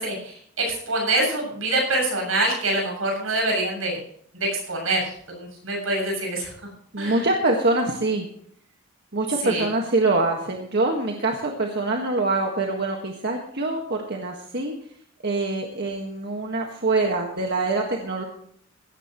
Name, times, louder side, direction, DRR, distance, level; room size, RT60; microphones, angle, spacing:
voice 1, 0.0-4.0 4.3-6.5 7.0-7.2 9.4-9.7, right 2 dB, 85° right, 0 dB, 7.2 m, -25 dB
voice 2, 6.9-8.3 9.1-14.7 15.2-18.2, right 2 dB, 55° right, 1 dB, 1.7 m, -24 dB
17.0 x 14.5 x 3.1 m, 0.63 s
head